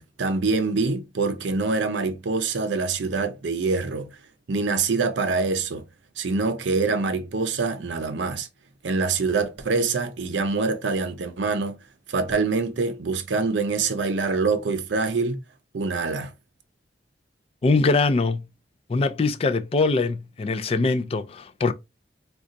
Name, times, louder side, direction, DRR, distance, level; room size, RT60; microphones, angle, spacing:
voice 1, 0.0-4.1 4.5-5.8 6.2-8.5 8.8-11.8 12.1-15.4 15.7-16.3, right 4 dB, 90° right, 0.5 m, -25 dB
voice 2, 17.6-18.4 18.9-21.7, left 3 dB, 35° left, 0.3 m, -22 dB
4.0 x 2.3 x 2.5 m
head